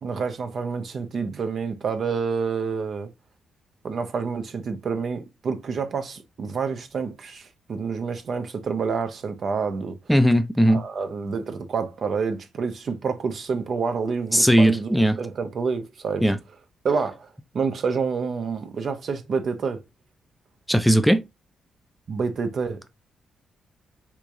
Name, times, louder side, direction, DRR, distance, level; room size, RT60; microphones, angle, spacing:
voice 1, 0.0-3.1 3.8-10.0 10.7-16.3 16.8-17.3 17.5-19.8 22.1-22.8, right 5 dB, 60° right, 0.6 m, -28 dB
voice 2, 10.1-10.8 14.3-15.2 16.2-16.4 20.7-21.2, equal, ahead, 0.4 m, -18 dB
3.5 x 3.0 x 2.5 m
cardioid pair, 80°, 0 cm